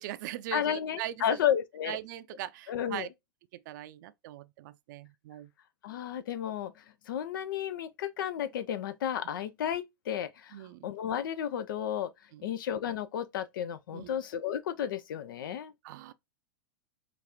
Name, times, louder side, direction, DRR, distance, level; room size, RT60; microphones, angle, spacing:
voice 1, 0.0-1.4 1.9-3.1 3.5-5.5 10.5-10.9 12.3-12.5 13.9-14.2 15.8-16.1, right 13 dB, 55° right, 0.4 m, -40 dB
voice 2, 0.5-2.0 2.7-3.1 5.8-12.1 12.4-15.7, left 9 dB, 65° left, 0.4 m, -33 dB
5.0 x 2.4 x 2.7 m
hypercardioid pair, 100°, 12 cm